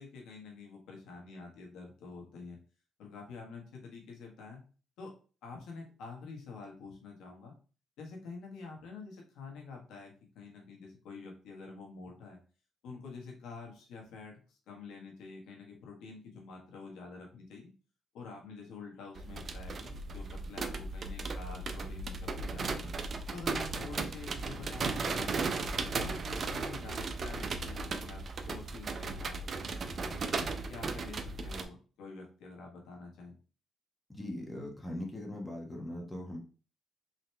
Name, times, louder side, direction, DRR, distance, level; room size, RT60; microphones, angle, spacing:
voice 1, 0.0-2.6 3.0-4.6 5.0-5.1 5.4-7.5 8.0-12.4 12.8-17.7 18.1-22.9 23.3-25.3 25.9-30.1 30.7-33.4, left 4 dB, 85° left, 0 dB, 1.4 m, -48 dB
sound 1, 19.2-31.6, right 3 dB, 45° right, 0.6 m, -36 dB
voice 2, 34.1-36.4, left 1 dB, 15° left, 0 dB, 1.1 m, -40 dB
3.9 x 2.9 x 3.3 m, 0.37 s
cardioid pair, 90°, 0 cm